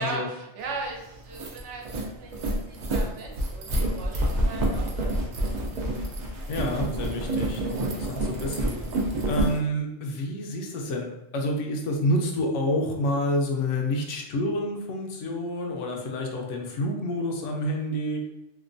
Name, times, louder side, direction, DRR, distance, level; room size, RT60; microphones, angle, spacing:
voice 1, 0.0-5.5 7.7-7.9, right 3 dB, 80° right, 0 dB, 0.9 m, -38 dB
sound 1, 0.7-0.8 1.2-9.6, right 1 dB, 65° right, 0.4 m, -28 dB
voice 2, 6.5-8.7 9.3-18.3, left 1 dB, 85° left, 1 dB, 0.9 m, -28 dB
2.9 x 2.2 x 2.5 m, 0.91 s
omnidirectional pair, 1.2 m